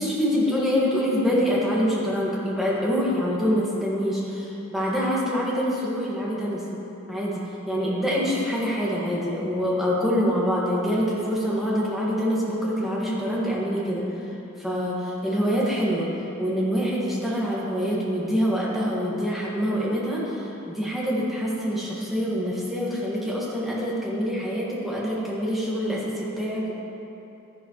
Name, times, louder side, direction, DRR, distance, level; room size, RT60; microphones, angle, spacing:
voice 1, 0.0-6.6 7.1-14.3 14.6-16.1 16.4-26.7, equal, ahead, -6 dB, 1.7 m, -25 dB
12.5 x 10.5 x 3.1 m, 2.8 s
head